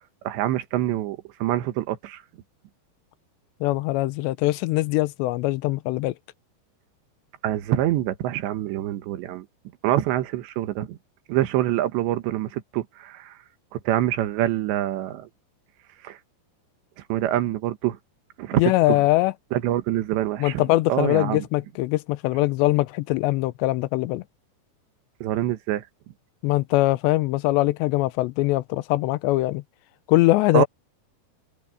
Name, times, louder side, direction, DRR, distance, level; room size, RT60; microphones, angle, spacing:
voice 1, 0.2-2.2 7.4-9.5 9.8-11.0 11.3-13.3 13.9-15.3 16.0-16.2 17.1-18.0 18.4-18.6 18.9-19.0 19.5-20.6 20.9-21.4 25.2-25.8 30.5-30.7, right 13 dB, 85° right, 3.5 m, -25 dB
voice 2, 3.6-6.1 18.6-19.3 20.4-24.2 26.4-29.6 30.1-30.7, left 18 dB, 85° left, 3.0 m, -22 dB
omnidirectional pair, 5.0 m